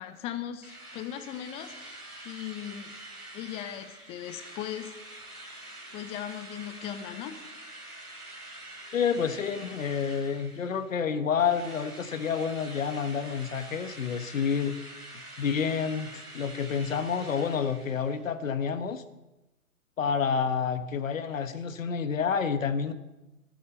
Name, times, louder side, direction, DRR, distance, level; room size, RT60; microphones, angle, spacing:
voice 1, 0.0-2.9 3.3-5.0 5.9-7.5, left 11 dB, 15° left, 10 dB, 0.7 m, -38 dB
Drill, 0.6-11.0 11.4-18.3, right 1 dB, 85° right, 3.3 m, -46 dB
voice 2, 8.9-14.9 15.4-19.0 20.0-22.9, left 6 dB, 60° left, 10 dB, 1.2 m, -29 dB
13.0 x 8.2 x 8.4 m, 1.0 s
figure-of-eight pair, 120°, 44 cm